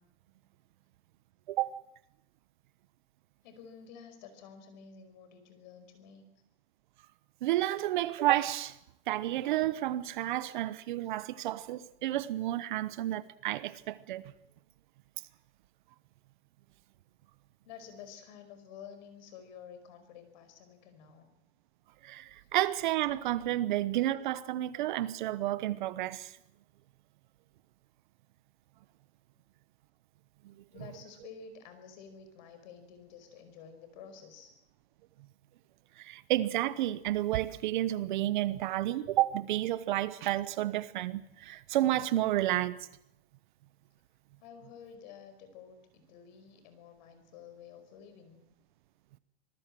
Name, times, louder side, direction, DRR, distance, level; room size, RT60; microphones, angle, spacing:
voice 1, 3.4-6.3 17.6-21.3 22.4-22.5 30.7-34.5 44.4-48.4, left 7 dB, 45° left, 5.2 m, -51 dB
voice 2, 7.4-8.7 9.1-14.2 22.0-26.3 36.0-42.8, right 14 dB, 45° right, 1.0 m, -31 dB
26.0 x 19.0 x 7.6 m
supercardioid pair, 170°, 33 cm